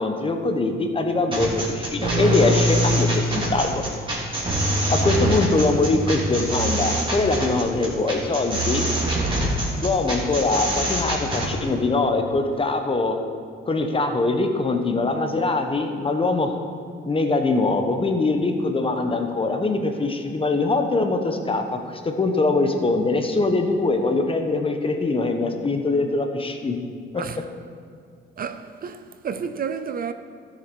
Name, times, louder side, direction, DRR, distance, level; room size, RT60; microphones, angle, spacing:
voice 1, 0.0-3.8 4.9-8.9 9.8-13.2 13.7-16.6 17.0-21.8 22.0-26.8, left 3 dB, 25° left, 1.1 m, -22 dB
sound 1, 1.3-11.5, right 1 dB, 25° right, 2.9 m, -23 dB
voice 2, 28.4-30.1, right 6 dB, 45° right, 0.6 m, -31 dB
13.0 x 6.8 x 4.7 m
cardioid pair, 90°, 20 cm